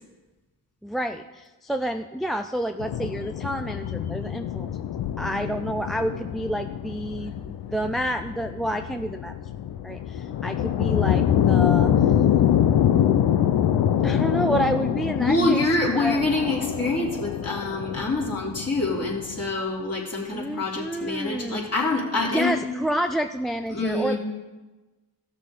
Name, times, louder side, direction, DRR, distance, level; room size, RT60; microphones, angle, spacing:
voice 1, 0.8-4.7 5.2-7.3 7.7-9.4 9.8-11.9 14.0-15.6 15.9-16.2 20.3-21.7 22.3-24.1, right 1 dB, ahead, 7 dB, 0.4 m, -29 dB
sound 1, 2.8-19.5, left 10 dB, 65° left, 0.8 m, -25 dB
voice 2, 15.2-22.5 23.7-24.2, left 2 dB, 35° left, -4 dB, 3.5 m, -25 dB
15.0 x 6.6 x 3.8 m, 1.2 s
supercardioid pair, 60°, 42 cm